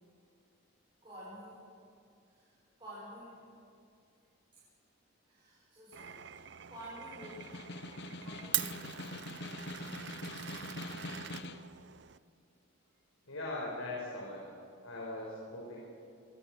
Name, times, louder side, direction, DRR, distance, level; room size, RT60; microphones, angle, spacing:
voice 1, 1.0-1.7 2.2-2.5 2.8-3.4 4.5-4.6 5.2-7.5 8.2-9.4 10.2-10.8, equal, 25° right, -9 dB, 6.6 m, -51 dB
Glass, 5.9-12.2, right 12 dB, 55° right, 0.6 m, -42 dB
Snare drum, 7.1-11.7, left 2 dB, 55° left, 1.2 m, -44 dB
voice 2, 13.3-14.5 14.8-15.8, left 2 dB, 85° left, -4 dB, 5.5 m, -40 dB
26.5 x 23.0 x 6.4 m, 2.5 s
head